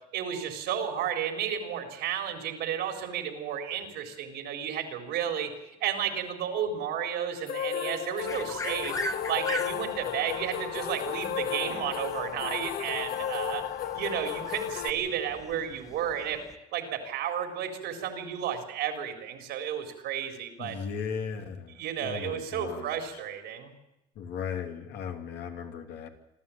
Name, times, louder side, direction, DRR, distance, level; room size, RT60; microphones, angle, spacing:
voice 1, 0.1-5.5 5.8-9.0 9.3-13.6 13.9-16.4 16.7-20.8 21.7-23.7, right 9 dB, 85° right, 4 dB, 4.2 m, -32 dB
sound 1, 7.5-14.9, left 9 dB, 65° left, 1.3 m, -34 dB
sound 2, 8.2-16.6, left 1 dB, 20° left, 1.7 m, -41 dB
voice 2, 20.6-23.0 24.1-26.1, left 6 dB, 80° left, 3 dB, 3.1 m, -37 dB
26.5 x 13.0 x 8.8 m, 0.91 s
cardioid pair, 110°, 17 cm